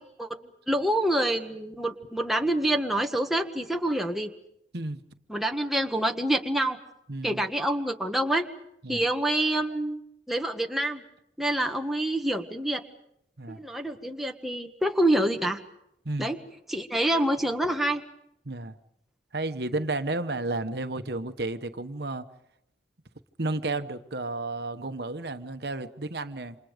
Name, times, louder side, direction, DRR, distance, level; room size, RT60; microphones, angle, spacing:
voice 1, 0.7-4.3 5.3-6.8 7.2-8.5 8.9-10.0 10.3-11.0 11.4-12.8 13.5-15.6 16.2-16.4 16.7-18.0, right 1 dB, ahead, 3 dB, 1.5 m, -26 dB
voice 2, 7.1-7.4 8.8-9.0 13.4-13.6 16.0-16.3 18.4-18.7 19.3-22.2 23.4-26.6, right 2 dB, 65° right, 9 dB, 1.2 m, -32 dB
29.0 x 26.5 x 5.2 m, 0.78 s
head